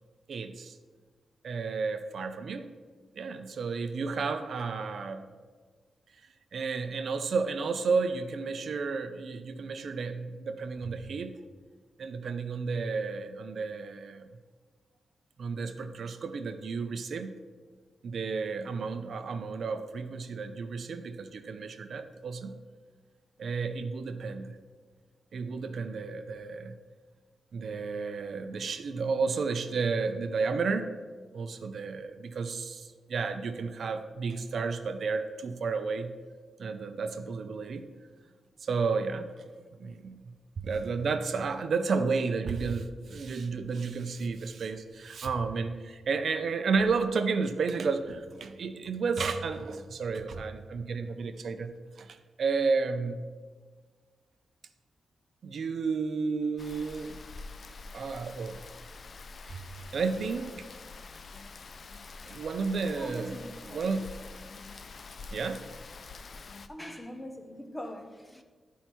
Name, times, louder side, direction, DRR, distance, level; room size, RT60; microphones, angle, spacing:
voice 1, 0.3-0.8 1.4-2.7 3.2-5.3 6.5-11.4 12.0-14.3 15.4-17.4 18.0-22.6 23.4-24.6 25.3-26.7 27.5-30.9 31.3-36.2 36.6-37.8 38.6-39.3 39.8-51.7 52.0-53.2 55.4-57.2 57.9-58.6 59.5-60.7 62.3-63.3 63.7-64.1 65.3-65.6, right 4 dB, 60° right, 0.5 m, -32 dB
Rain, 56.6-66.7, left 4 dB, 45° left, 0.3 m, -46 dB
voice 2, 63.0-63.9 66.6-68.4, equal, 10° left, 0.7 m, -43 dB
12.0 x 4.6 x 4.3 m
wide cardioid pair, 145°, 0 cm